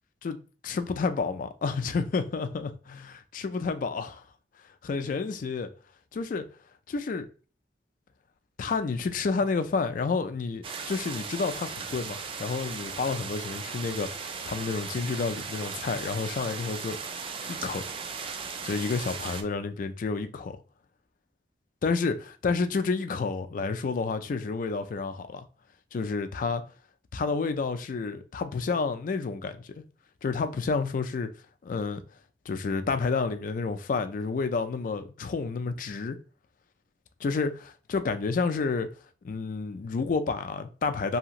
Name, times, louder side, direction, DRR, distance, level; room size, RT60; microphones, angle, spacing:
voice 1, 0.6-4.2 4.8-5.7 6.1-6.5 6.9-7.3 8.6-17.0 17.5-17.8 18.6-20.6 21.8-25.5 25.9-26.6 27.1-29.8 30.2-31.3 31.6-32.0 32.5-36.2 37.2-38.9 39.2-41.2, left 4 dB, 45° left, 0.3 m, -30 dB
sound 1, 10.6-19.4, right 5 dB, 30° right, 0.3 m, -37 dB
2.9 x 2.8 x 2.4 m
head